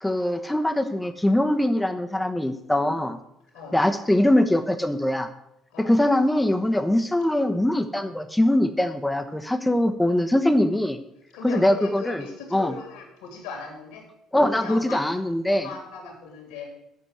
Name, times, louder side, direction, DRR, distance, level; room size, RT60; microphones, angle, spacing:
voice 1, 0.0-3.2 3.7-5.3 5.9-11.0 11.4-12.2 12.5-12.7 14.3-15.7, left 1 dB, 10° left, 8 dB, 1.1 m, -22 dB
voice 2, 5.7-6.0 11.3-14.1 14.5-15.0 15.5-16.7, left 5 dB, 70° left, 2 dB, 2.7 m, -38 dB
8.5 x 6.8 x 7.5 m, 0.81 s
figure-of-eight pair, 50°, 0 cm